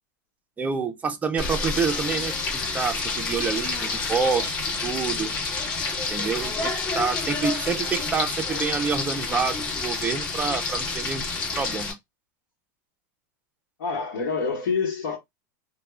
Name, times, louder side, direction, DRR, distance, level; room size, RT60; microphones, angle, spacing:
voice 1, 0.6-5.3 6.1-11.2 11.6-11.9, right 5 dB, 15° right, 0.5 m, -27 dB
Frying (food), 1.4-11.9, left 4 dB, 45° left, 1.1 m, -29 dB
voice 2, 13.8-15.2, left 5 dB, 80° left, 1.0 m, -26 dB
2.3 x 2.2 x 3.1 m
supercardioid pair, 135°, 11 cm